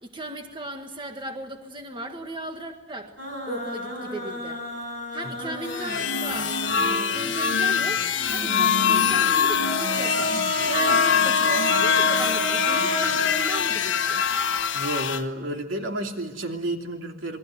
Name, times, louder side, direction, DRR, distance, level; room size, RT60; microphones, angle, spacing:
voice 1, 0.0-3.1 3.5-4.6 5.1-8.0 8.3-10.4 10.7-14.2, right 1 dB, 25° right, 4 dB, 1.8 m, -36 dB
sound 1, 3.2-7.2 8.3-14.1, equal, 65° right, 6.0 m, -31 dB
sound 2, 5.6-15.2, left 7 dB, 65° left, 1.3 m, -23 dB
voice 2, 14.7-17.4, right 1 dB, 85° right, 3 dB, 3.0 m, -31 dB
27.5 x 22.0 x 9.2 m, 1.2 s
head